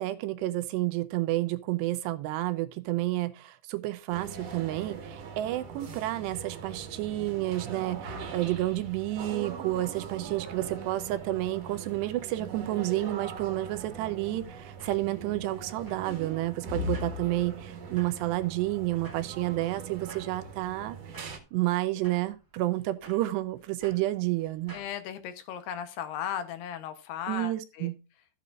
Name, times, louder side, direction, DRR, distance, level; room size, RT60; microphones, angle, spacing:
voice 1, 0.0-21.0 21.5-24.8 27.3-27.9, right 16 dB, 80° right, 2.7 m, -30 dB
sound 1, 4.1-21.4, right 3 dB, 50° right, 2.2 m, -41 dB
sound 2, 14.5-24.9, right 3 dB, 15° right, 0.7 m, -55 dB
voice 2, 24.7-27.9, left 9 dB, 75° left, 2.8 m, -37 dB
13.5 x 8.5 x 2.4 m
omnidirectional pair, 5.1 m